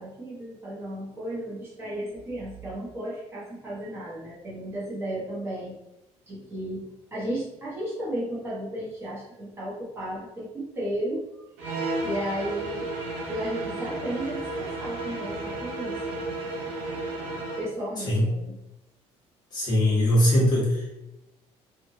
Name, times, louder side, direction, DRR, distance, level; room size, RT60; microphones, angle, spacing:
voice 1, 0.0-5.8 6.3-11.3 12.0-12.9 13.3-16.0 17.6-18.6, right 1 dB, 20° right, -8 dB, 0.8 m, -34 dB
sound 1, 11.6-17.7, right 2 dB, 70° right, 0.7 m, -33 dB
voice 2, 19.5-21.0, left 1 dB, 35° left, -7 dB, 1.1 m, -21 dB
3.0 x 2.4 x 2.6 m, 0.91 s
cardioid pair, 165°, 12 cm